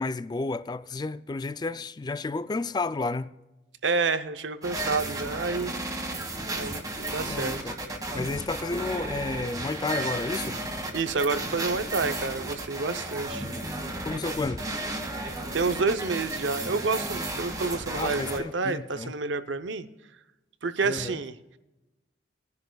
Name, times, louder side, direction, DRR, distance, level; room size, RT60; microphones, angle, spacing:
voice 1, 0.0-3.3 7.2-7.8 8.1-10.6 14.0-14.6 17.9-19.1 20.8-21.2, left 3 dB, 25° left, 0.3 m, -31 dB
voice 2, 3.8-5.7 6.5-7.7 10.9-13.5 15.5-19.9 20.6-21.3, right 4 dB, 85° right, 0.7 m, -29 dB
sound 1, 4.6-18.4, right 2 dB, 20° right, 1.6 m, -33 dB
20.5 x 10.5 x 2.3 m
head